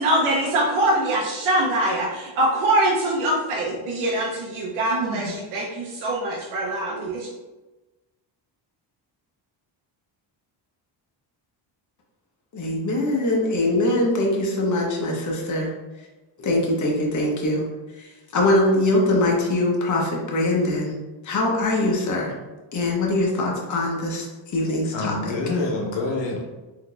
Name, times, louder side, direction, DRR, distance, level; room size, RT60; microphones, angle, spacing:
voice 1, 0.0-7.3, right 1 dB, 80° right, -3 dB, 0.7 m, -23 dB
voice 2, 12.5-15.7 16.4-17.7 18.0-21.0 21.2-22.3 22.7-24.3 24.5-25.3, left 1 dB, 35° left, -2 dB, 0.9 m, -22 dB
voice 3, 24.9-26.4, left 3 dB, 65° left, 1 dB, 0.9 m, -26 dB
3.7 x 2.8 x 2.3 m, 1.1 s
cardioid pair, 90°, 48 cm